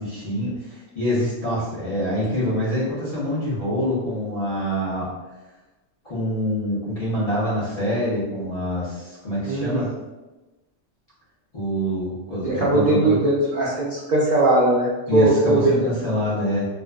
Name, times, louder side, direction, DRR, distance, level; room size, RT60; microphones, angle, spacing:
voice 1, 0.0-5.1 6.0-9.9 11.5-13.2 15.1-16.7, equal, 35° left, -10 dB, 0.7 m, -25 dB
voice 2, 9.4-9.8 12.4-15.8, right 2 dB, 70° right, -7 dB, 0.4 m, -20 dB
2.5 x 2.2 x 2.2 m, 1.1 s
omnidirectional pair, 1.4 m